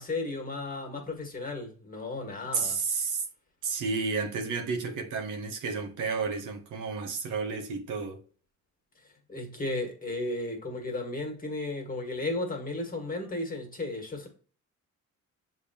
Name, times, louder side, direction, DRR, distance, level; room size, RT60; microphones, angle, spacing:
voice 1, 0.0-2.8 9.3-14.3, left 2 dB, 30° left, 1.6 m, -34 dB
voice 2, 2.5-3.3 3.6-8.2, right 4 dB, 85° right, 0.9 m, -31 dB
6.7 x 2.8 x 2.7 m
cardioid pair, 90°, 30 cm